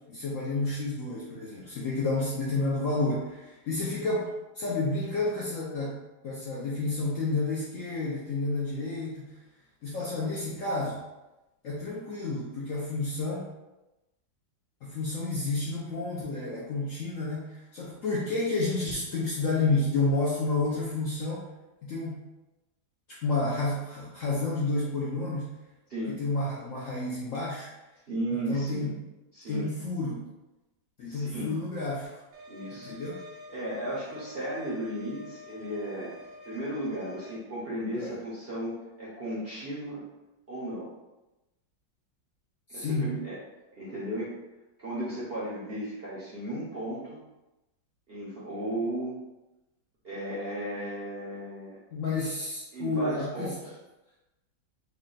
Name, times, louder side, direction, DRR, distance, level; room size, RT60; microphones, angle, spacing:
voice 1, 0.1-4.3 4.5-6.0 6.2-9.3 9.8-11.0 11.6-13.5 14.8-21.5 21.8-22.2 23.2-25.5 26.1-27.7 28.5-28.9 29.5-30.3 31.0-32.1 32.9-33.2 37.9-38.1 42.7-43.2 51.9-53.5, left 3 dB, 65° left, -6 dB, 0.8 m, -30 dB
voice 2, 28.1-28.9 29.3-29.7 31.1-31.6 32.5-32.9 33.5-36.2 36.5-40.0 40.5-40.9 42.7-43.4 43.7-44.3 44.8-47.2 48.1-49.2 50.0-51.8 52.7-53.6, right 1 dB, 50° right, -8 dB, 0.7 m, -35 dB
sound 1, 32.3-37.4, left 2 dB, 85° right, 1.3 m, -47 dB
3.4 x 2.2 x 3.8 m, 1.0 s
omnidirectional pair, 2.0 m